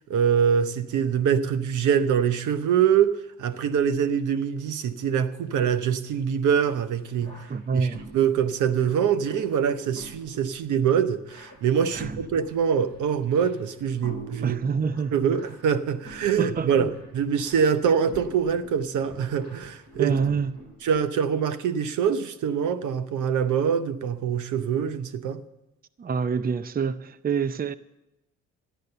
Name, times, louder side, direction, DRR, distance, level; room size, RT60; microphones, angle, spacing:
voice 1, 0.1-7.4 7.7-14.6 15.1-20.2 20.8-25.4, right 7 dB, 80° right, 0.9 m, -24 dB
sound 1, 7.2-20.9, right 1 dB, 55° right, 6.3 m, -46 dB
voice 2, 7.5-8.0 11.9-12.1 14.4-15.4 16.4-16.9 20.0-20.5 26.0-27.7, right 5 dB, 30° right, 0.6 m, -27 dB
13.5 x 10.5 x 6.8 m
cardioid pair, 90°, 30 cm